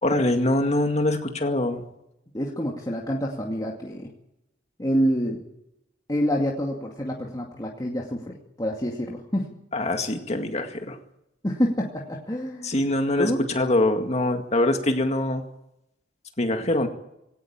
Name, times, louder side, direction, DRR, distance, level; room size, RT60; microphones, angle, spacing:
voice 1, 0.0-1.8 9.7-11.0 12.6-15.4 16.4-16.9, left 1 dB, 35° left, 5 dB, 2.1 m, -24 dB
voice 2, 2.3-4.1 4.8-5.4 6.1-9.5 11.4-12.7 13.2-13.5, equal, 20° left, -1 dB, 2.4 m, -27 dB
19.0 x 18.0 x 8.9 m, 0.82 s
head